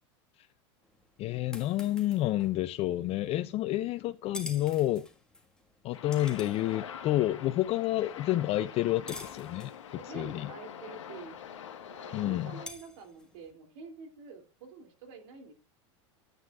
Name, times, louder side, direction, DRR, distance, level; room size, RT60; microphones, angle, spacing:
sound 1, 0.8-13.5, left 2 dB, 5° left, 1.5 m, -51 dB
voice 1, 1.2-5.0 5.8-10.5 12.1-12.6, left 14 dB, 40° left, 0.4 m, -29 dB
sound 2, 5.9-12.7, left 8 dB, 90° left, 1.2 m, -45 dB
voice 2, 9.9-11.4 11.8-15.5, right 5 dB, 70° right, 2.7 m, -47 dB
11.5 x 9.2 x 2.4 m
hypercardioid pair, 100°, 15 cm